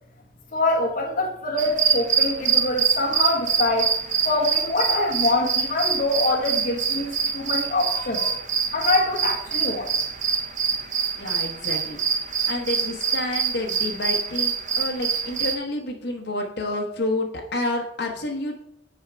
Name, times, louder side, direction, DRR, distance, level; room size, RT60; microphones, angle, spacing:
voice 1, 0.5-4.0 4.2-8.4 8.7-9.9, left 2 dB, 50° left, -2 dB, 1.3 m, -24 dB
sound 1, 1.6-15.6, right 6 dB, 45° right, 0.6 m, -25 dB
voice 2, 11.2-12.0 12.4-18.6, left 2 dB, 65° left, 1 dB, 1.0 m, -29 dB
8.7 x 5.0 x 3.3 m, 0.79 s
head